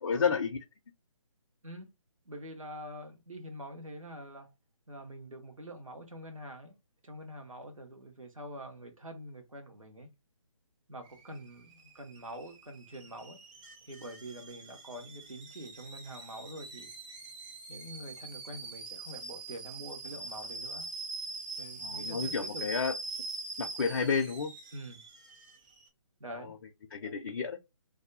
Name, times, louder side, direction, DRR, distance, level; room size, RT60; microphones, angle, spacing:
voice 1, 0.0-0.6 21.8-22.9 23.6-24.5 26.4-26.6 26.9-27.6, left 5 dB, 45° left, 0.4 m, -31 dB
voice 2, 2.3-4.5 4.9-6.8 7.0-10.1 10.9-13.4 13.9-16.9 17.7-20.9 21.6-22.6 24.7-25.0 26.2-26.5, right 1 dB, 80° right, 1.1 m, -45 dB
Alarm / Boiling, 11.0-25.9, right 3 dB, 15° right, 0.5 m, -43 dB
2.6 x 2.2 x 4.0 m
figure-of-eight pair, 145°, 17 cm